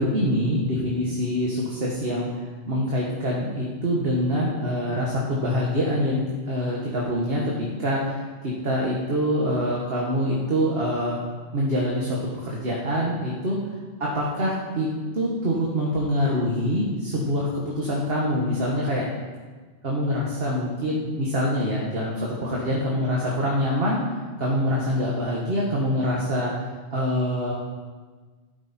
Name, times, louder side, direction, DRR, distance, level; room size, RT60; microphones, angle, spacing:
voice 1, 0.0-2.3 2.7-11.2 11.5-13.6 14.0-14.9 15.1-19.1 19.8-24.0 24.4-26.5 26.9-27.5, equal, 60° right, -4 dB, 1.8 m, -25 dB
12.5 x 9.0 x 4.3 m, 1.4 s
omnidirectional pair, 1.1 m